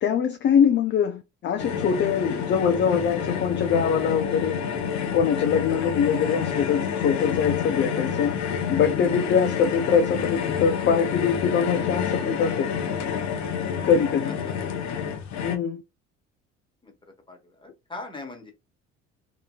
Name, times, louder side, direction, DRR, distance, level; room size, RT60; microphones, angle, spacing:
voice 1, 0.0-4.6 5.1-8.3 8.7-12.7 13.8-14.4 15.4-15.8, left 7 dB, 30° left, 0.4 m, -23 dB
sound 1, 1.6-15.6, left 7 dB, 50° left, 0.8 m, -28 dB
voice 2, 17.3-18.5, left 2 dB, 15° left, 1.2 m, -40 dB
2.8 x 2.5 x 2.3 m
hypercardioid pair, 60°, 37 cm